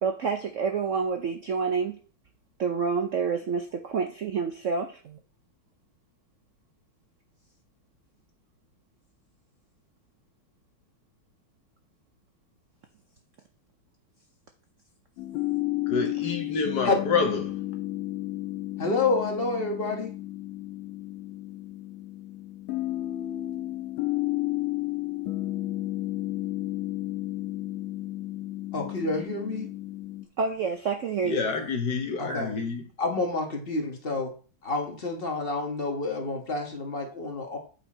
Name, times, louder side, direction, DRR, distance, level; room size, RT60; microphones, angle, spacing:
voice 1, 0.0-2.0 2.6-5.2 16.2-16.3 30.4-31.5 32.3-32.5, right 5 dB, 75° right, 0.7 m, -28 dB
sound 1, 15.2-30.2, left 16 dB, 90° left, 1.5 m, -32 dB
voice 2, 15.9-17.6 31.2-32.8, left 4 dB, 60° left, 1.6 m, -28 dB
voice 3, 18.8-20.1 28.7-29.7 32.2-32.6 33.0-34.3 34.6-37.6, left 3 dB, 30° left, 1.3 m, -28 dB
8.5 x 4.5 x 4.2 m
omnidirectional pair, 2.2 m